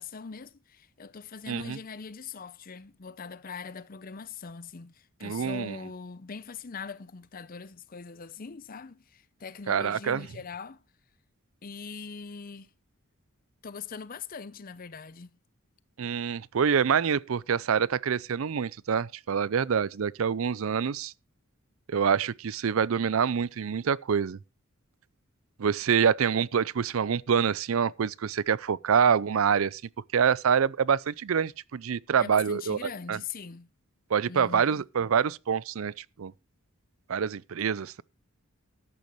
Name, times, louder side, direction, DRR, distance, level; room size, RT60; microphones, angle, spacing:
voice 1, 0.0-10.8 11.6-12.7 13.6-15.4 32.2-33.7 34.3-34.8, left 5 dB, 40° left, 0.6 m, -42 dB
voice 2, 1.5-1.8 5.2-5.8 9.7-10.2 16.0-21.1 21.9-24.4 25.6-29.8 30.1-33.2 34.1-36.3 37.1-38.0, right 7 dB, 75° right, 0.5 m, -26 dB
14.0 x 10.5 x 3.1 m
head